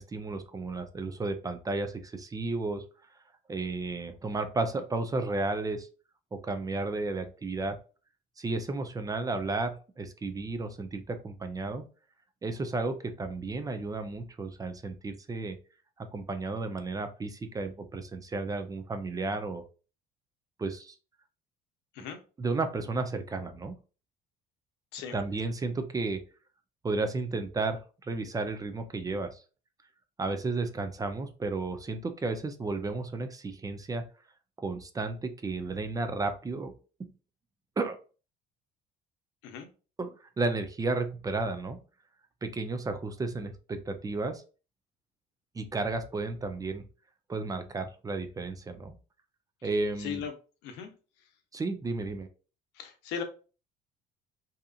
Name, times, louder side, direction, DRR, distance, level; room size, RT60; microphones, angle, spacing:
voice 1, 0.0-2.8 3.5-5.9 6.3-7.8 8.4-11.8 12.4-15.6 16.0-19.6 20.6-21.0 22.4-23.8 25.1-26.2 26.8-29.4 30.2-34.0 34.6-36.7 37.8-38.0 40.0-41.8 42.4-44.4 45.5-46.8 47.3-48.9 49.6-50.2 51.5-52.3, right 3 dB, 20° right, 8 dB, 0.4 m, -33 dB
voice 2, 50.0-50.3 50.6-50.9 52.7-53.2, left 7 dB, 85° left, 6 dB, 0.6 m, -37 dB
2.7 x 2.4 x 2.3 m, 0.35 s
supercardioid pair, 95°, 18 cm